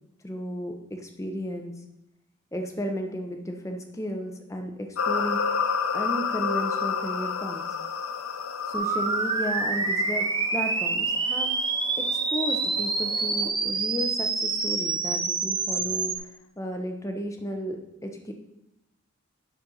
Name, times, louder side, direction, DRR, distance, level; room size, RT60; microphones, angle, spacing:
voice 1, 0.2-1.7 2.5-5.4 5.9-7.6 8.7-10.3 10.5-11.5 12.0-16.3 16.6-18.3, equal, 15° left, 3 dB, 0.8 m, -34 dB
sound 1, 5.0-13.5, left 6 dB, 80° left, 0.6 m, -31 dB
sound 2, 8.7-16.2, right 4 dB, 20° right, 0.7 m, -27 dB
10.5 x 4.4 x 5.4 m, 0.88 s
head